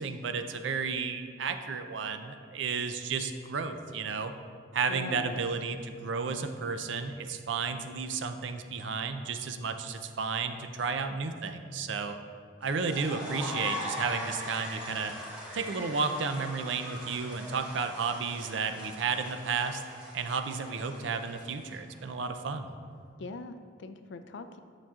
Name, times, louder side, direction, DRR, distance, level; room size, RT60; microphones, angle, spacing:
voice 1, 0.0-4.3 4.7-12.2 12.6-15.1 15.5-19.8 20.1-22.7, right 5 dB, 65° right, 8 dB, 0.5 m, -32 dB
voice 2, 4.9-5.4 23.2-24.6, left 3 dB, 60° left, 10 dB, 0.4 m, -42 dB
sound 1, 12.6-21.9, left 1 dB, 5° right, 1.6 m, -41 dB
8.8 x 7.1 x 2.4 m, 2.1 s
head